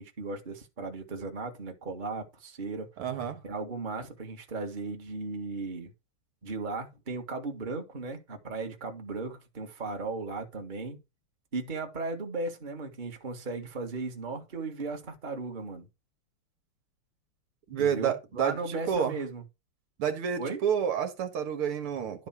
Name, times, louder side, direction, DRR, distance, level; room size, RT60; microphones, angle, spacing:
voice 1, 0.0-2.9 3.4-5.9 6.4-11.0 11.5-15.9 17.8-19.4 20.4-20.6, right 3 dB, 25° right, 1.6 m, -36 dB
voice 2, 3.0-3.4 17.7-19.2 20.0-22.3, right 8 dB, 80° right, 2.4 m, -29 dB
12.0 x 4.1 x 5.9 m
omnidirectional pair, 2.4 m